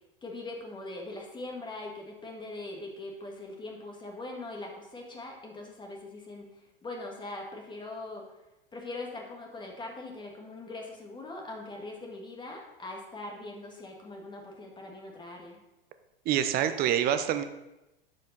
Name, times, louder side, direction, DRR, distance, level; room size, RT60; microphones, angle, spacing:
voice 1, 0.2-8.3 8.7-15.6, left 2 dB, 15° left, 0 dB, 1.6 m, -41 dB
voice 2, 16.3-17.4, right 10 dB, 30° right, 10 dB, 0.7 m, -26 dB
11.5 x 4.9 x 4.0 m, 0.96 s
hypercardioid pair, 95°, 29 cm